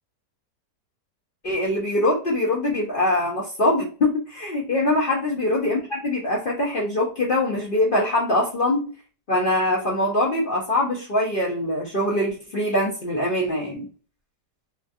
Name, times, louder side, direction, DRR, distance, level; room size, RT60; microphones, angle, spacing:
voice 1, 1.4-8.9 9.3-13.9, left 1 dB, 85° left, -4 dB, 0.4 m, -23 dB
3.0 x 2.5 x 2.4 m, 0.37 s
omnidirectional pair, 1.9 m